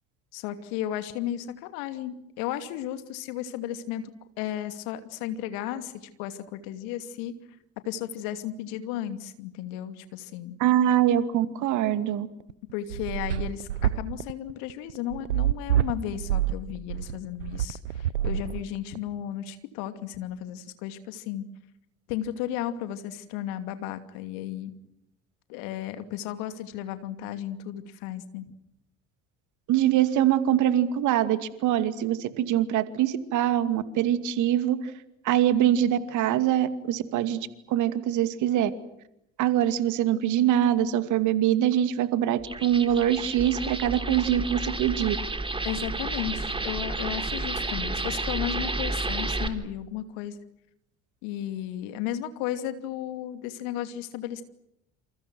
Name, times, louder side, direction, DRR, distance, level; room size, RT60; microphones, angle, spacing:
voice 1, 0.3-4.1 4.4-7.3 7.8-10.6 12.7-21.4 22.1-24.7 25.5-28.5 45.6-50.4 51.2-54.4, left 11 dB, 70° left, 9 dB, 2.7 m, -34 dB
voice 2, 10.6-12.3 29.7-34.8 35.2-38.7 39.4-45.2, right 11 dB, 60° right, 11 dB, 2.5 m, -24 dB
sound 1, 12.4-19.0, right 12 dB, 85° right, 0.9 m, -27 dB
sound 2, 42.4-49.5, right 2 dB, 15° right, 3.7 m, -31 dB
28.0 x 28.0 x 6.3 m, 0.81 s
hypercardioid pair, 60°, 34 cm